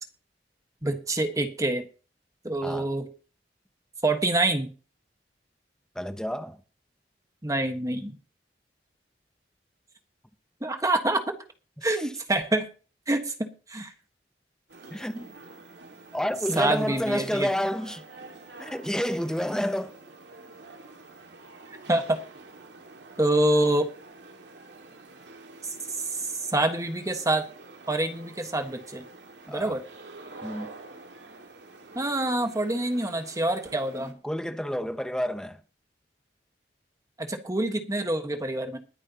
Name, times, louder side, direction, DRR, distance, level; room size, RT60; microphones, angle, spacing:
voice 1, 0.8-1.8 2.4-3.0 4.0-4.7 7.4-8.1 10.6-11.2 11.8-12.7 13.1-13.9 16.6-17.5 21.9-22.2 23.2-23.9 26.5-27.4 27.9-29.0 29.5-29.8 31.9-34.1 37.2-38.8, right 2 dB, 20° right, 1.4 m, -26 dB
voice 2, 5.9-6.6 11.8-12.1 14.9-15.3 16.1-18.1 18.6-20.0 29.5-29.8 30.4-30.7 33.9-35.6, equal, 5° left, 0.8 m, -30 dB
sound 1, 14.7-34.1, right 3 dB, 85° right, 2.1 m, -48 dB
21.0 x 9.7 x 2.9 m
head